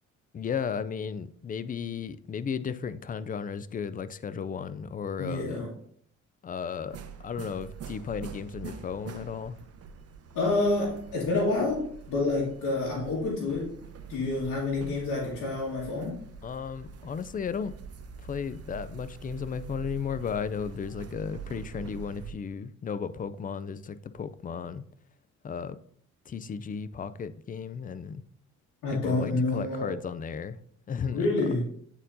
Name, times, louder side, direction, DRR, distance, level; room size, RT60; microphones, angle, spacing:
voice 1, 0.3-5.6 6.4-9.6 16.4-17.7 18.2-24.8 25.4-25.8 26.3-28.2 28.9-30.6 30.9-31.5, left 6 dB, 30° left, 0.4 m, -35 dB
voice 2, 5.2-5.7 10.3-13.8 14.1-16.2 28.8-30.0 31.1-31.6, left 2 dB, 85° left, 1.9 m, -28 dB
sound 1, 6.9-22.3, right 6 dB, 55° right, 0.8 m, -45 dB
8.8 x 4.4 x 2.7 m
cardioid pair, 90°, 30 cm